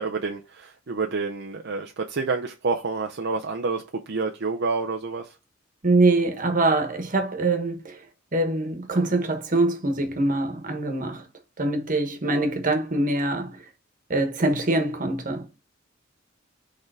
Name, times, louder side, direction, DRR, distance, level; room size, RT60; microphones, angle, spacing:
voice 1, 0.0-5.4, right 4 dB, 55° right, 0.6 m, -28 dB
voice 2, 5.8-8.0 8.3-11.2 11.6-13.6 14.1-15.5, right 2 dB, 40° right, 1.3 m, -24 dB
6.6 x 3.6 x 4.8 m
head